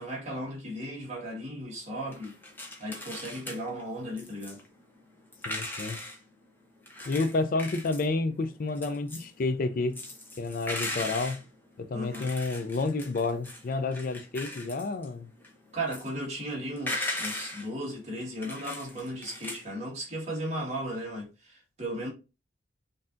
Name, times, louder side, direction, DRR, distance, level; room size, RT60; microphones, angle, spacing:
voice 1, 0.0-2.4 2.8-4.6 11.9-12.3 15.7-22.1, right 1 dB, 35° right, 1.6 m, -36 dB
sound 1, 2.1-6.2 6.8-19.6, left 1 dB, 10° left, 0.7 m, -39 dB
voice 2, 5.5-6.0 7.1-10.0 10.4-11.4 11.8-15.3, left 3 dB, 45° left, 0.4 m, -30 dB
5.4 x 2.7 x 2.5 m
head